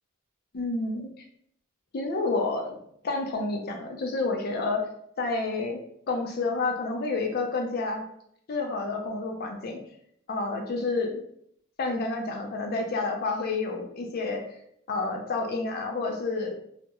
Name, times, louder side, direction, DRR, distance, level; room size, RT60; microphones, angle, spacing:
voice 1, 0.5-1.1 1.9-2.8 3.0-4.9 5.2-5.8 6.1-8.0 8.5-9.8 10.3-11.2 11.8-14.4 14.9-16.6, left 3 dB, 45° left, 2 dB, 0.4 m, -29 dB
2.3 x 2.0 x 2.9 m, 0.70 s
head